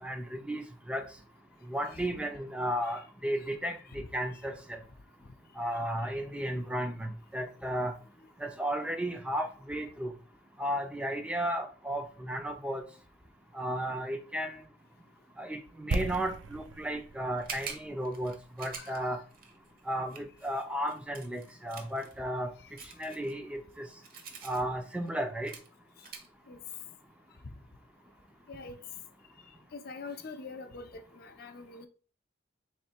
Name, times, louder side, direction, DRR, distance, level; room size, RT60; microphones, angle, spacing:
voice 1, 0.0-1.0 1.7-4.8 5.6-7.9 8.4-10.1 10.6-12.8 13.5-14.6 15.4-19.2 19.9-22.5 23.0-23.9 24.4-25.5, right 1 dB, 5° right, 0.4 m, -34 dB
sound 1, 15.9-19.8 20.1-20.2, right 3 dB, 75° right, 0.5 m, -38 dB
sound 2, 17.4-22.1 22.8-24.6 25.1-25.2 25.4-25.7 26.0-26.3, right 6 dB, 50° right, 0.8 m, -45 dB
voice 2, 18.8-19.2 26.5-26.6 27.4-27.5 28.5-28.8 29.7-31.9, left 3 dB, 55° left, 0.5 m, -45 dB
3.6 x 3.2 x 4.3 m
head